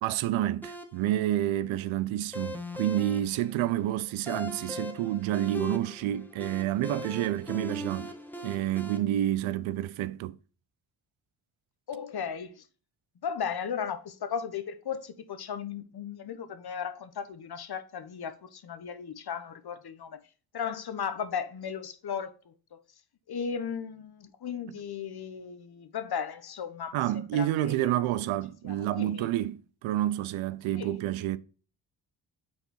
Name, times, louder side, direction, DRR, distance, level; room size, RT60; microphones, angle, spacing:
voice 1, 0.0-8.1 8.4-10.4 26.9-31.4, right 13 dB, 85° right, 0.6 m, -29 dB
sound 1, 0.6-9.0, left 2 dB, 5° left, 1.1 m, -41 dB
voice 2, 11.9-12.6 13.2-20.2 20.5-22.8 23.3-28.1 28.6-29.3 30.7-30.9, left 7 dB, 55° left, 1.1 m, -36 dB
5.8 x 4.1 x 4.2 m
supercardioid pair, 50°, 47 cm